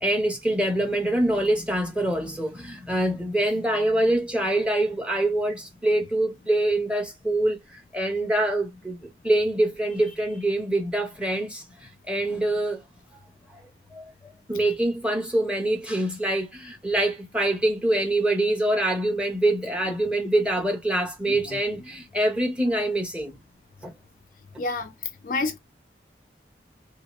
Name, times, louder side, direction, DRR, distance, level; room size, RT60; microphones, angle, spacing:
voice 1, 0.0-7.6 7.9-11.6 12.1-12.8 13.9-14.0 14.5-23.3 23.8-23.9, right 1 dB, 5° right, 0.9 m, -25 dB
voice 2, 21.3-21.6 24.6-24.9 25.2-25.6, left 3 dB, 50° left, 0.4 m, -29 dB
3.1 x 2.8 x 3.0 m
head